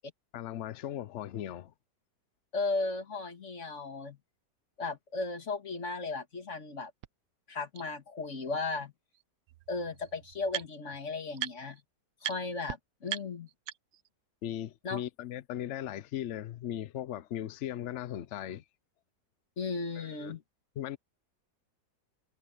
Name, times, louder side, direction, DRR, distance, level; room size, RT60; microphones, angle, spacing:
voice 1, 0.3-1.7 14.4-18.6 20.0-20.3 20.8-21.0, left 11 dB, 70° left, 0.7 m, -38 dB
voice 2, 2.5-4.2 4.8-6.9 7.5-8.9 9.7-11.8 12.2-13.5 14.8-15.0 19.6-20.4, left 3 dB, 40° left, 2.3 m, -35 dB
sound 1, 7.0-7.1 7.7-7.8 9.1-9.2 9.5-11.0 11.4-11.8 12.2-12.4 12.7-12.8 13.1-14.1, right 12 dB, 65° right, 0.9 m, -39 dB
omnidirectional pair, 1.9 m